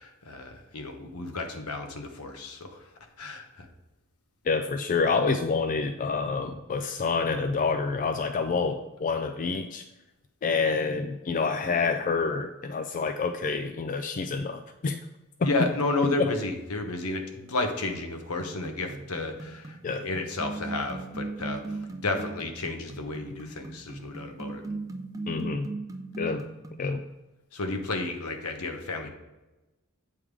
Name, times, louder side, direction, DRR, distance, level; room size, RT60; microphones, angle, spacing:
voice 1, 0.0-2.9 3.2-3.7 15.4-24.6 27.5-29.1, left 2 dB, 75° left, 5 dB, 1.0 m, -32 dB
voice 2, 4.4-9.9 10.4-15.0 15.4-15.5 16.0-16.3 19.8-20.1 25.3-25.7 26.2-26.4 26.8-27.0, left 4 dB, 35° left, 8 dB, 0.3 m, -27 dB
sound 1, 18.4-26.9, right 3 dB, 15° right, 0.5 m, -38 dB
8.5 x 3.5 x 4.7 m, 1.1 s
head